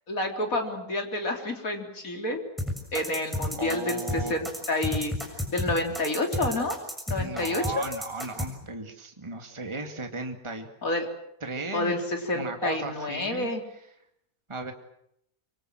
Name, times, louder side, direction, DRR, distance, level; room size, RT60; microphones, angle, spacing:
voice 1, 0.1-2.4 2.9-5.1 5.5-6.8 7.1-7.8 10.8-11.1 11.7-13.6, left 2 dB, 65° left, 3 dB, 4.1 m, -29 dB
sound 1, 2.6-8.5, left 1 dB, ahead, 6.6 m, -31 dB
voice 2, 3.6-4.4 7.2-10.7 11.4-12.0 12.3-13.5 14.5-14.7, right 3 dB, 20° right, 4 dB, 2.3 m, -35 dB
26.0 x 24.0 x 7.7 m, 0.76 s
omnidirectional pair, 1.6 m